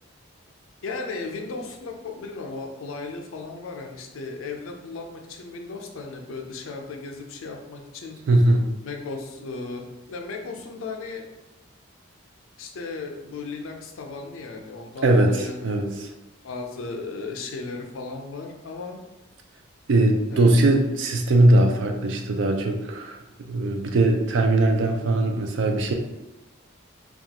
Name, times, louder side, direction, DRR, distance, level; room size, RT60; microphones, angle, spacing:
voice 1, 0.8-8.2 8.8-11.3 12.6-16.0 16.4-19.0 20.3-20.6, left 3 dB, 80° left, 3 dB, 0.4 m, -36 dB
voice 2, 8.3-8.7 15.0-16.1 19.9-25.9, right 2 dB, 65° right, 4 dB, 0.4 m, -20 dB
2.3 x 2.3 x 2.8 m, 0.97 s
head